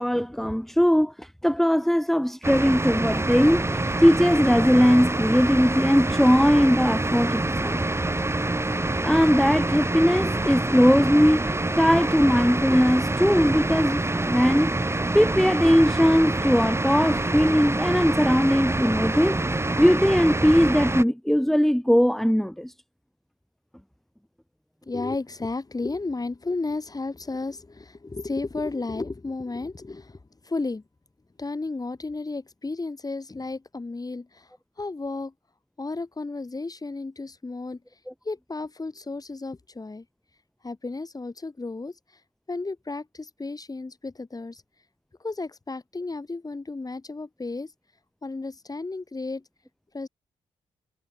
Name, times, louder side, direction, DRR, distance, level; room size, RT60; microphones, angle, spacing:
voice 1, 0.0-7.8 9.0-11.5 11.8-14.7 15.1-19.4 19.8-22.7, equal, ahead, 2.7 m, -20 dB
sound 1, 2.4-21.0, right 2 dB, 20° right, 6.7 m, -26 dB
voice 2, 24.8-30.8 31.4-34.5 34.8-35.3 35.8-37.8 38.2-40.1 40.6-42.0 42.5-44.6 45.2-47.7 48.2-49.4 49.9-50.1, left 3 dB, 30° left, 3.6 m, -33 dB
supercardioid pair, 45°, 13 cm